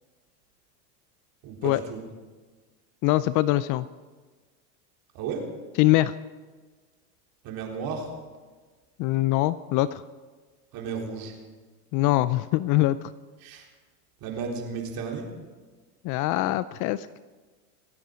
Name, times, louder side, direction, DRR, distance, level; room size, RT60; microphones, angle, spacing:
voice 1, 1.4-2.0 5.1-5.5 7.4-8.1 10.7-11.3 13.4-13.7 14.2-15.3, right 5 dB, 50° right, 0 dB, 3.9 m, -33 dB
voice 2, 3.0-3.9 5.8-6.1 9.0-10.0 11.9-13.0 16.0-17.2, left 16 dB, 40° left, 16 dB, 0.5 m, -23 dB
25.5 x 9.3 x 5.1 m, 1.4 s
supercardioid pair, 110°, 46 cm